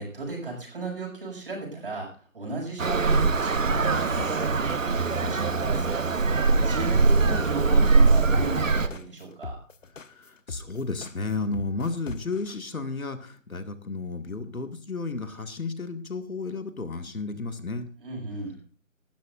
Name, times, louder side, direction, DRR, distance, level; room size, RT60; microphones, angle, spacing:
voice 1, 0.0-6.1 6.6-9.6 18.0-18.6, right 3 dB, 40° right, 0 dB, 6.5 m, -35 dB
Traffic noise roadway noise, 2.8-8.9, right 3 dB, 70° right, 1.1 m, -22 dB
sound 1, 4.2-12.6, left 3 dB, 65° left, 1.1 m, -40 dB
voice 2, 10.1-17.9, left 3 dB, 85° left, 7 dB, 2.1 m, -33 dB
19.5 x 12.5 x 2.6 m, 0.38 s
figure-of-eight pair, 165°, 41 cm